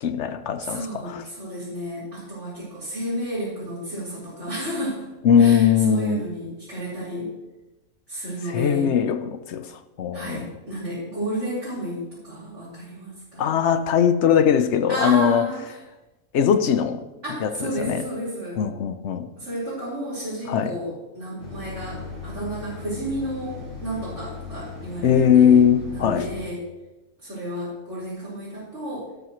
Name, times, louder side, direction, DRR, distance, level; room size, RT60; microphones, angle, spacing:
voice 1, 0.0-1.2 5.2-6.2 8.5-9.7 10.0-10.5 13.4-15.4 16.3-17.1 17.4-18.0 18.6-19.3 20.5-20.7 25.0-26.3, left 8 dB, 65° left, 10 dB, 1.0 m, -20 dB
voice 2, 0.6-5.0 5.4-7.3 8.1-8.9 10.1-13.5 14.9-15.6 17.2-18.6 19.4-25.6 25.9-26.6 27.2-29.1, right 1 dB, 60° right, -12 dB, 5.0 m, -32 dB
sound 1, 21.4-26.4, left 4 dB, 85° left, 5.4 m, -37 dB
12.0 x 12.0 x 3.1 m, 1.1 s
omnidirectional pair, 1.4 m